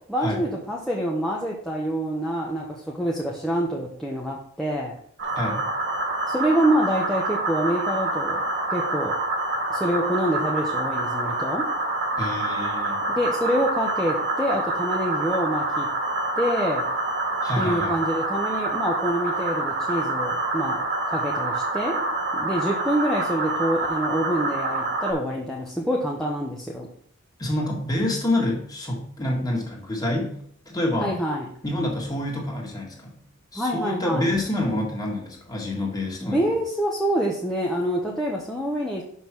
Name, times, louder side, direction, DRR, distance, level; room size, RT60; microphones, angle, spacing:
voice 1, 0.1-4.9 6.3-8.4 8.7-9.2 9.7-11.6 13.2-15.9 16.4-16.8 17.6-20.8 21.1-22.1 22.3-26.9 31.0-31.5 33.6-34.3 36.2-39.0, equal, ahead, -4 dB, 0.9 m, -26 dB
sound 1, 5.2-25.1, right 2 dB, 50° right, 1.5 m, -27 dB
voice 2, 5.4-5.7 12.2-13.0 17.4-18.0 27.4-30.4 30.7-31.2 31.6-33.2 33.5-36.5, left 1 dB, 20° left, -1 dB, 2.0 m, -27 dB
6.0 x 5.5 x 6.0 m, 0.62 s
head